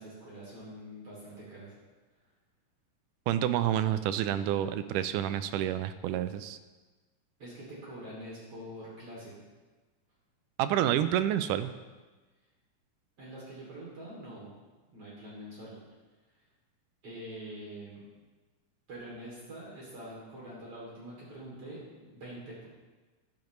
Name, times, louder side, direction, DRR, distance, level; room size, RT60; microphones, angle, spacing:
voice 1, 0.0-1.7 7.4-9.3 13.2-14.5 14.9-15.8 17.0-18.0 18.9-22.7, right 1 dB, 50° right, -6 dB, 3.7 m, -45 dB
voice 2, 3.3-6.6 10.6-11.7, right 11 dB, 90° right, 12 dB, 2.1 m, -28 dB
14.5 x 10.0 x 3.1 m, 1.3 s
omnidirectional pair, 3.6 m